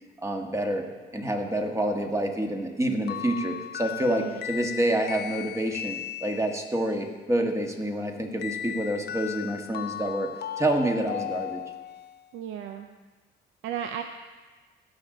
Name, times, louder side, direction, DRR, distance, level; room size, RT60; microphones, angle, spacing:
voice 1, 0.2-10.3 10.6-11.6, right 1 dB, 15° right, 3 dB, 1.4 m, -28 dB
sound 1, 3.1-6.8 8.4-12.2, left 10 dB, 55° left, 0.4 m, -36 dB
voice 2, 4.1-4.4 12.3-12.9 13.6-14.0, right 9 dB, 90° right, 6 dB, 0.6 m, -34 dB
17.0 x 6.2 x 3.9 m, 1.3 s
cardioid pair, 90°, 20 cm